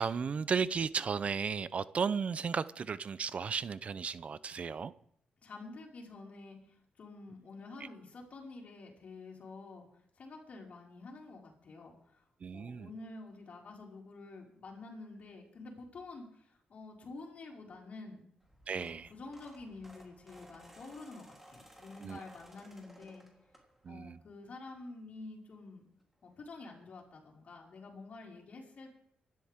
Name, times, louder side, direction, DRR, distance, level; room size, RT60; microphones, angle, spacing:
voice 1, 0.0-4.9 12.4-12.9 18.7-19.1 22.0-22.2 23.8-24.2, right 6 dB, 50° right, 0.6 m, -34 dB
voice 2, 5.4-9.9 10.2-12.2 12.5-18.3 18.7-23.3 23.9-25.9 26.2-28.9, left 3 dB, 55° left, 5.2 m, -49 dB
sound 1, 18.4-24.0 24.5-24.8 26.0-26.1 26.3-26.4 26.8-26.9, equal, 5° right, 3.5 m, -58 dB
24.5 x 12.5 x 3.7 m
cardioid pair, 100°, 3 cm